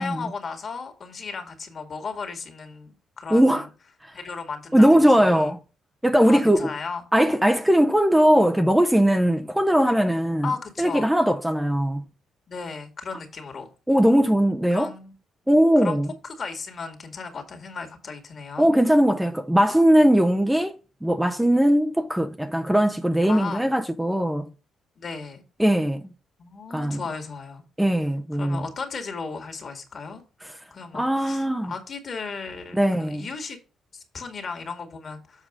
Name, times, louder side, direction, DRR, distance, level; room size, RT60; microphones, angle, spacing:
voice 1, 0.0-3.6 4.1-5.5 6.3-7.0 10.4-11.1 12.5-13.7 14.7-15.1 15.8-16.0 16.2-18.7 23.2-23.7 25.0-25.4 26.4-27.6 28.3-30.2 30.7-33.6 33.9-35.5, left 5 dB, 45° left, 2.0 m, -35 dB
voice 2, 3.3-3.7 4.0-4.1 4.7-5.6 6.0-6.7 7.1-10.5 10.8-12.0 13.9-14.9 15.5-16.1 18.6-24.5 25.6-26.1 26.7-27.0 27.8-28.7 30.4-30.5 30.9-31.7 32.7-33.3, equal, 5° right, 0.6 m, -20 dB
7.4 x 4.9 x 5.0 m
cardioid pair, 90°, 0 cm